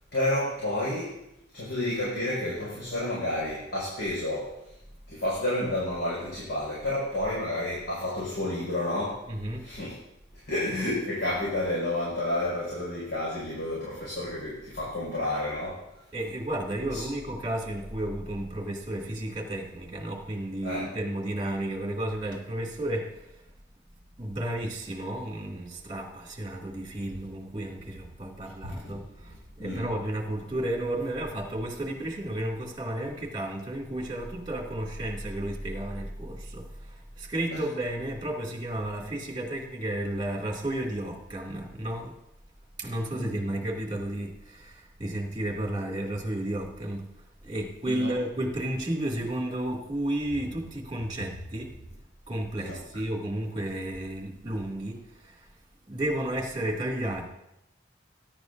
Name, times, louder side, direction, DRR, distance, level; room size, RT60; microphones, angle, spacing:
voice 1, 0.1-1.2 1.5-4.7 5.1-9.2 9.6-9.9 10.3-16.0 16.9-17.0 20.6-20.9 28.6-29.0 29.6-29.9 37.5-37.6 43.1-43.3 47.9-48.2 52.6-52.8, left 1 dB, 60° left, -7 dB, 5.5 m, -30 dB
voice 2, 9.3-9.7 14.8-14.9 16.1-23.5 24.2-42.2 42.8-47.1 47.4-51.8 52.3-55.5 55.9-57.3, right 1 dB, 25° right, -1 dB, 2.5 m, -32 dB
21.0 x 11.0 x 2.7 m, 0.84 s
head